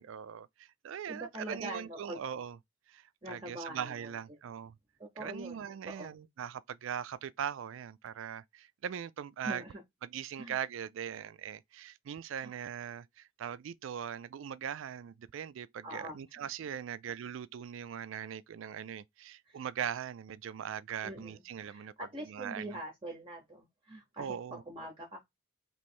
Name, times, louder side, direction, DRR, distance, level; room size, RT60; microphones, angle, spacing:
voice 1, 0.0-2.6 2.9-4.8 5.2-9.6 10.0-21.9 22.3-22.8 24.2-24.6, right 8 dB, 70° right, 0.3 m, -40 dB
voice 2, 1.1-2.2 3.2-3.9 5.0-6.1 9.4-9.8 10.4-10.5 12.4-12.5 15.8-16.4 19.5-19.6 21.0-25.2, right 1 dB, 25° right, 0.8 m, -44 dB
3.1 x 3.0 x 4.3 m
head